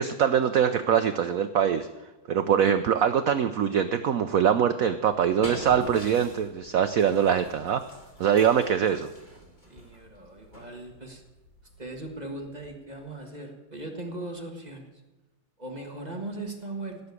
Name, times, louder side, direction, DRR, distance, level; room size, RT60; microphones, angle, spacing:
voice 1, 0.0-1.9 2.3-7.8 8.2-9.1, right 8 dB, 85° right, 10 dB, 0.7 m, -23 dB
sound 1, 5.0-13.0, left 1 dB, 25° left, 2.4 m, -45 dB
voice 2, 9.7-11.2 11.8-14.9 15.6-17.0, right 2 dB, 20° right, 2 dB, 1.6 m, -38 dB
16.5 x 6.9 x 8.2 m, 1.1 s
omnidirectional pair, 2.2 m